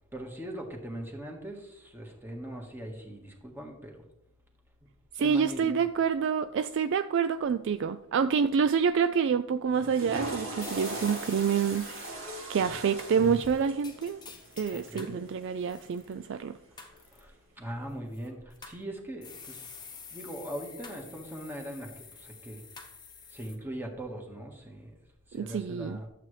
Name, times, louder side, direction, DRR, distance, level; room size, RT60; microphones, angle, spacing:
voice 1, 0.1-4.0 5.2-5.8 14.7-15.2 17.1-19.7 20.1-22.6 23.3-24.9 25.3-26.1, right 1 dB, 10° right, 1.5 m, -40 dB
voice 2, 5.2-12.2 12.5-14.2 14.6-16.6 25.3-26.0, right 6 dB, 60° right, 0.3 m, -27 dB
Water / Toilet flush, 9.7-16.0, right 1 dB, 75° right, 3.1 m, -40 dB
sound 1, 10.6-12.1 13.0-15.2 15.6-16.1 16.8-17.2 18.1-18.8 19.2-23.6, left 5 dB, 20° left, 1.1 m, -48 dB
11.5 x 7.6 x 3.3 m
head